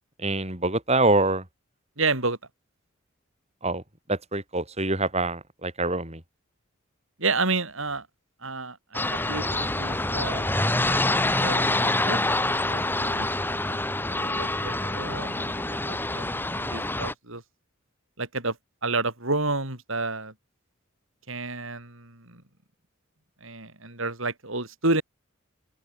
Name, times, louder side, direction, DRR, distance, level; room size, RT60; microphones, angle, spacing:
voice 1, 0.2-1.4 3.6-3.8 4.1-6.2, right 2 dB, 30° right, 6.0 m, -25 dB
voice 2, 2.0-2.4 7.2-8.1 8.4-10.5 11.3-12.2 12.7-13.3 13.7-17.4 18.2-18.6 18.8-20.3 21.3-22.4 23.4-25.0, right 3 dB, 65° right, 5.8 m, -30 dB
sound 1, 8.9-17.1, left 2 dB, 10° left, 2.1 m, -26 dB
open air
head